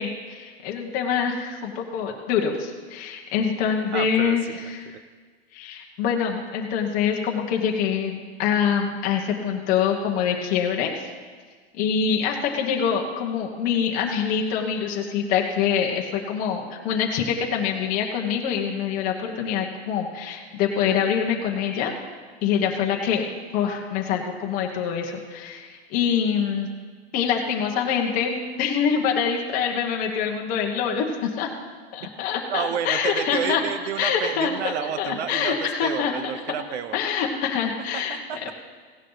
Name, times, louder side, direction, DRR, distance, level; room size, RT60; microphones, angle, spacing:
voice 1, 0.0-4.6 5.5-10.9 11.7-21.9 22.4-23.3 23.5-26.7 27.1-31.5 31.9-33.6 34.0-36.3 36.9-38.2, left 7 dB, 25° left, 0 dB, 1.1 m, -25 dB
voice 2, 3.9-4.4 4.9-5.0 32.5-37.0 37.9-38.5, right 9 dB, 80° right, 12 dB, 0.9 m, -30 dB
16.5 x 11.0 x 4.0 m, 1.5 s
supercardioid pair, 175°, 33 cm